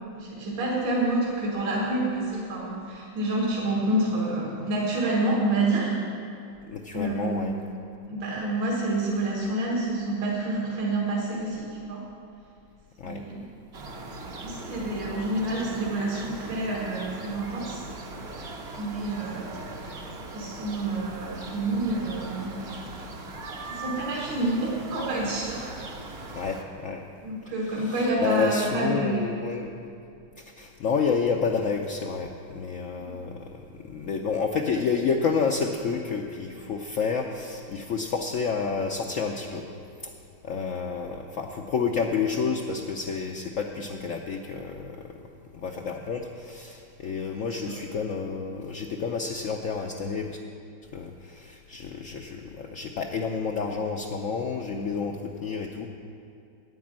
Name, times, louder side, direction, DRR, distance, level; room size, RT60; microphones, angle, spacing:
voice 1, 0.2-6.1 6.9-7.5 8.1-12.0 13.0-13.5 14.4-17.8 18.8-19.5 20.3-22.6 23.6-25.8 27.2-29.3 33.0-33.1 47.6-47.7, right 2 dB, 70° right, -4 dB, 2.3 m, -28 dB
voice 2, 6.7-7.5 13.0-13.2 26.3-27.0 27.7-29.7 30.4-39.6 40.0-40.1 40.4-45.1 45.5-50.4 50.9-55.9, left 5 dB, 70° left, 1 dB, 0.7 m, -29 dB
sound 1, 13.7-26.6, right 2 dB, 45° right, 0.9 m, -39 dB
9.5 x 9.5 x 7.4 m, 2.5 s
omnidirectional pair, 2.1 m